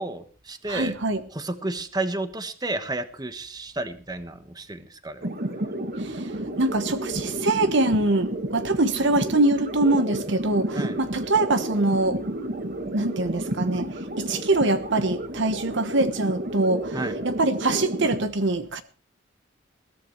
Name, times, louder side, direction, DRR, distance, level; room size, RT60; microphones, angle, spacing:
voice 1, 0.0-0.9 1.3-5.3 10.7-11.0 16.9-17.1, right 2 dB, 20° right, 1.3 m, -31 dB
voice 2, 0.7-1.2 6.0-6.3 6.6-12.2 12.9-13.8 14.2-17.0 17.2-18.8, right 2 dB, 65° right, 1.2 m, -24 dB
sound 1, 5.2-18.2, right 1 dB, 50° right, 1.7 m, -31 dB
21.0 x 15.0 x 3.2 m
head